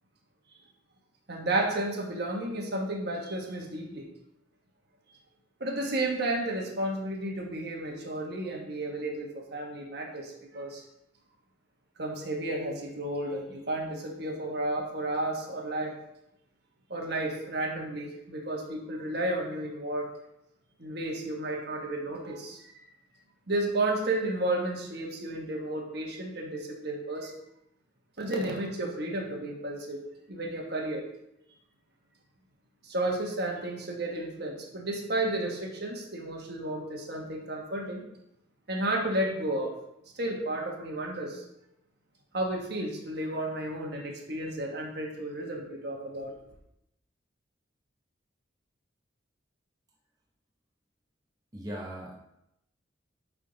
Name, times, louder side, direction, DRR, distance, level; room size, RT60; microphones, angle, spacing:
voice 1, 1.3-4.1 5.6-10.8 12.0-16.0 16.9-20.1 20.8-22.8 23.5-27.3 28.2-30.0 30.3-31.0 32.8-38.0 38.7-39.7 40.1-41.4 42.3-46.3, right 1 dB, 55° right, 0 dB, 1.3 m, -32 dB
voice 2, 51.5-52.2, equal, 20° right, -3 dB, 0.9 m, -38 dB
9.2 x 3.6 x 3.9 m, 0.82 s
head